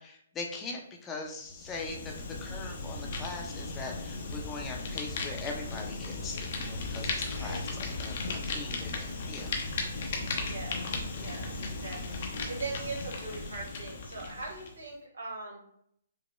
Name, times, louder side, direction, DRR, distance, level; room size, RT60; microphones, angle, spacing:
voice 1, 0.0-9.5, left 3 dB, 15° left, 1 dB, 0.7 m, -41 dB
Fire, 1.4-14.7, left 3 dB, 55° left, 0.8 m, -36 dB
voice 2, 10.5-10.8 11.1-15.6, right 3 dB, 90° right, -2 dB, 1.3 m, -41 dB
5.4 x 2.1 x 3.1 m, 0.70 s
hypercardioid pair, 140°, 0 cm